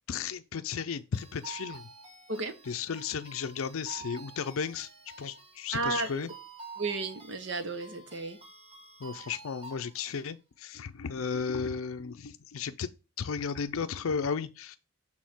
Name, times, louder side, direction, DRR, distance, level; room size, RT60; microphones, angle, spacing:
voice 1, 0.1-1.9 2.7-4.9 5.2-6.3 9.0-12.9 13.2-14.8, left 6 dB, 85° left, 0.5 m, -34 dB
sound 1, 1.1-10.2, right 4 dB, 25° right, 1.4 m, -49 dB
voice 2, 5.7-6.3 6.8-8.4, right 3 dB, 60° right, 1.0 m, -33 dB
6.4 x 3.6 x 4.4 m
head